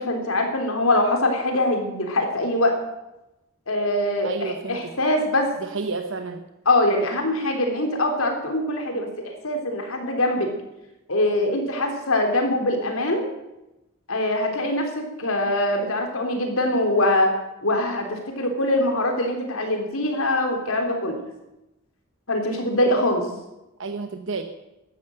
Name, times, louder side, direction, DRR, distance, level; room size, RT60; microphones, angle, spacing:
voice 1, 0.0-2.8 3.7-5.5 6.7-10.5 11.1-13.3 14.1-17.3 17.6-21.2 22.3-23.3, left 1 dB, 85° left, 4 dB, 3.6 m, -23 dB
voice 2, 4.2-4.9 5.6-6.4 23.8-24.4, right 4 dB, 65° right, 6 dB, 1.0 m, -30 dB
13.5 x 11.5 x 7.9 m, 0.94 s
head